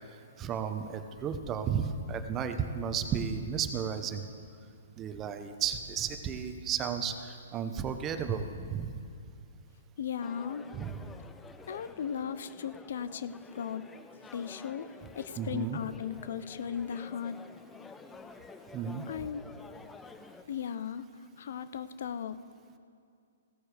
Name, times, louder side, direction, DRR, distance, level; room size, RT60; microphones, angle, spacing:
voice 1, 0.1-4.3 5.0-9.0 10.7-11.0 15.4-15.8 18.7-19.0, right 7 dB, 25° right, 8 dB, 0.9 m, -33 dB
voice 2, 10.0-10.7 11.7-13.8 14.3-14.9 15.1-17.3 19.1-19.4 20.5-21.1 21.4-22.4, left 8 dB, 65° left, 13 dB, 0.6 m, -36 dB
sound 1, 10.2-20.4, left 4 dB, 10° left, 0.6 m, -50 dB
16.5 x 13.0 x 3.4 m, 2.3 s
hypercardioid pair, 130°, 0 cm